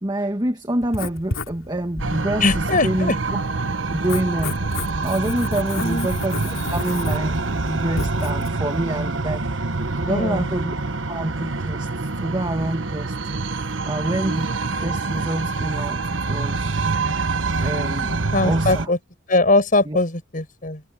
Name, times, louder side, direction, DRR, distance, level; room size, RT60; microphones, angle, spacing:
voice 1, 0.0-3.1 3.9-10.7 11.1-11.9 12.2-13.2 13.9-14.5 14.8-16.8 17.6-18.9 19.9-20.0, right 1 dB, 20° right, 1.7 m, -27 dB
Writing, 0.8-8.5, left 2 dB, 90° left, 3.3 m, -32 dB
sound 1, 2.0-18.9, right 3 dB, 65° right, 1.2 m, -26 dB
voice 2, 2.4-3.2 5.8-6.1 10.1-10.5 18.3-19.0 19.3-20.8, left 2 dB, 40° left, 6.1 m, -20 dB
head